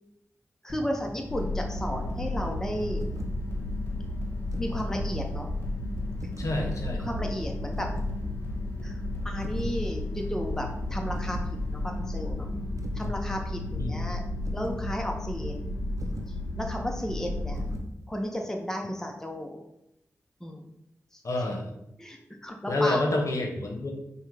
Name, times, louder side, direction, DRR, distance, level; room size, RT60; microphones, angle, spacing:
voice 1, 0.6-3.0 4.6-5.5 6.9-7.9 8.8-8.9 9.2-11.4 11.7-12.5 12.9-14.2 14.5-15.6 16.6-17.6 18.1-19.6 20.4-20.6 21.1-21.2 22.0-23.0, equal, 10° left, 2 dB, 0.6 m, -33 dB
sound 1, 0.7-12.2, right 1 dB, 30° left, 1.3 m, -43 dB
sound 2, 1.3-17.8, left 2 dB, 80° left, 0.5 m, -33 dB
sound 3, 2.9-3.4 4.3-5.0 6.2-6.7 7.7-8.2 9.4-9.8 11.1-11.6 12.8-13.2 14.5-14.9 16.0-16.4 17.6-18.0, right 1 dB, 65° right, 0.6 m, -41 dB
voice 2, 6.4-7.1 13.7-14.0 21.2-21.7 22.7-23.9, left 2 dB, 60° left, 2 dB, 0.8 m, -28 dB
5.6 x 2.2 x 3.3 m, 0.85 s
cardioid pair, 45°, 6 cm